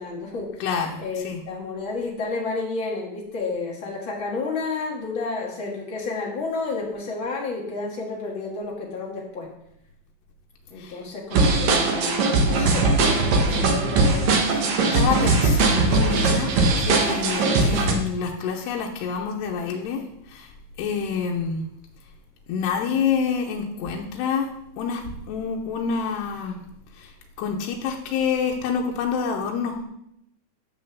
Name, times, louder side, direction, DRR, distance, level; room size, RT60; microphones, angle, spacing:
voice 1, 0.0-9.5 10.7-15.1, left 3 dB, 45° left, -2 dB, 1.6 m, -31 dB
voice 2, 0.6-1.4 10.8-11.0 13.6-13.8 14.5-14.7 14.9-20.0 20.3-20.5 20.8-21.7 22.5-24.5 24.8-26.6 27.0-27.1 27.4-29.8, left 6 dB, 80° left, 0 dB, 3.0 m, -27 dB
sound 1, 11.3-17.9, right 3 dB, 65° right, 1.8 m, -20 dB
9.5 x 5.6 x 7.0 m, 0.79 s
omnidirectional pair, 4.7 m